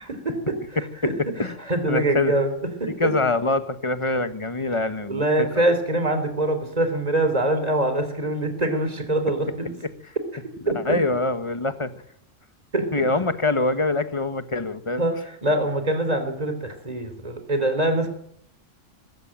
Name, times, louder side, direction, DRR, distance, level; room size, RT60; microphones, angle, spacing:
voice 1, 0.0-2.5 2.8-3.1 5.1-9.7 10.7-11.0 12.7-12.9 15.0-18.1, right 1 dB, 30° right, 8 dB, 3.4 m, -24 dB
voice 2, 1.9-2.3 2.8-5.5 10.7-11.9 12.9-15.0, left 2 dB, 25° left, 11 dB, 1.2 m, -24 dB
20.5 x 16.0 x 8.9 m, 0.70 s
omnidirectional pair, 1.3 m